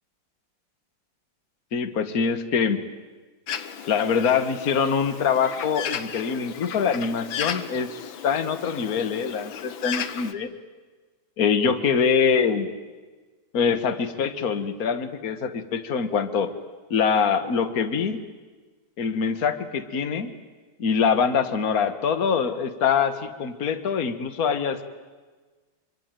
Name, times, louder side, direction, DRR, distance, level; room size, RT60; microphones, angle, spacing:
voice 1, 1.7-2.8 3.9-10.5 11.4-12.7 13.5-16.5 16.9-18.2 19.0-20.3 20.8-24.8, left 6 dB, 50° left, 10 dB, 1.8 m, -24 dB
Bird, 3.5-10.3, left 8 dB, 85° left, 1.9 m, -35 dB
26.0 x 25.0 x 9.2 m, 1.4 s
omnidirectional pair, 2.1 m